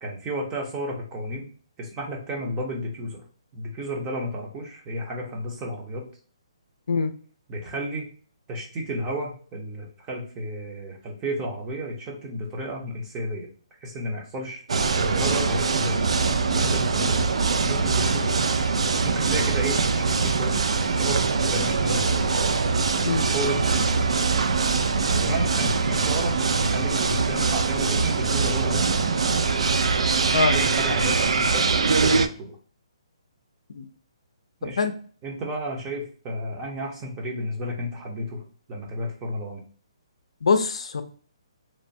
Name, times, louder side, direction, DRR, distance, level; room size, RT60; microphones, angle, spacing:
voice 1, 0.0-1.5 1.8-3.2 3.5-6.1 7.5-8.1 8.5-13.5 13.8-14.6 15.0-16.0 16.5-18.4 19.0-20.6 20.9-22.3 23.3-23.8 25.1-28.9 30.5-32.6 34.6-34.8 35.2-38.4 38.7-39.6, equal, 15° right, 0.6 m, -32 dB
sound 1, 14.7-32.3, right 4 dB, 85° right, 0.3 m, -23 dB
voice 2, 40.4-41.0, left 4 dB, 80° left, 0.4 m, -23 dB
3.0 x 2.1 x 2.6 m
hypercardioid pair, 165°, 3 cm